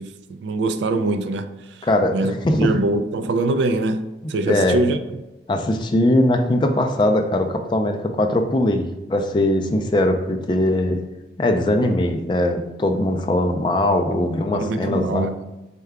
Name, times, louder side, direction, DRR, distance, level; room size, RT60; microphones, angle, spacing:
voice 1, 0.0-5.0 14.1-14.2 14.5-15.4, right 2 dB, 85° right, 0.3 m, -23 dB
voice 2, 4.5-4.8 5.5-11.0 11.4-15.3, left 1 dB, 25° left, 0.3 m, -20 dB
4.6 x 2.2 x 3.4 m
head